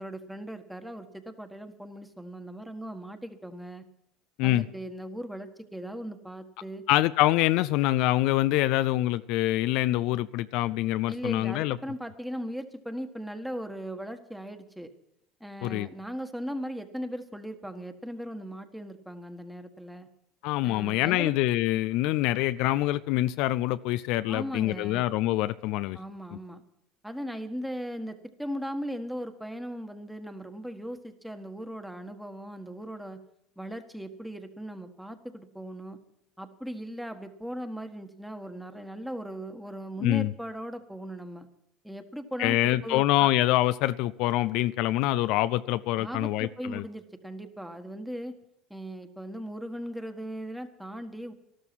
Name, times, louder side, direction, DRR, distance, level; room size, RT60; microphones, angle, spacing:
voice 1, 0.0-3.8 4.4-6.8 11.1-14.9 15.4-20.1 20.6-21.3 24.3-25.0 25.9-26.6 27.0-33.2 33.6-36.0 36.4-41.5 41.8-43.3 46.0-48.3 48.7-51.3, equal, 5° right, 7 dB, 1.5 m, -38 dB
voice 2, 6.9-11.8 15.6-15.9 20.4-26.0 40.0-40.3 42.4-46.8, left 16 dB, 70° left, 14 dB, 0.4 m, -25 dB
13.0 x 12.5 x 6.1 m, 0.79 s
supercardioid pair, 95°, 0 cm